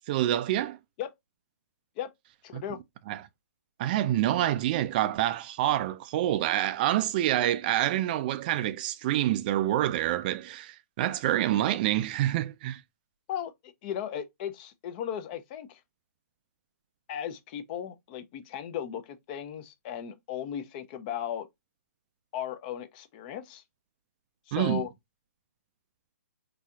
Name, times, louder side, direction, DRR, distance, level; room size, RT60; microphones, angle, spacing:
voice 1, 0.1-0.8 2.5-2.6 3.1-3.2 3.8-12.8 24.5-24.8, right 13 dB, 35° right, 0.3 m, -27 dB
voice 2, 2.4-2.8 13.3-13.5 13.8-15.8 17.1-21.5 22.3-23.6 24.5-24.9, left 9 dB, 35° left, 0.5 m, -36 dB
4.1 x 2.7 x 2.3 m
figure-of-eight pair, 130°, 9 cm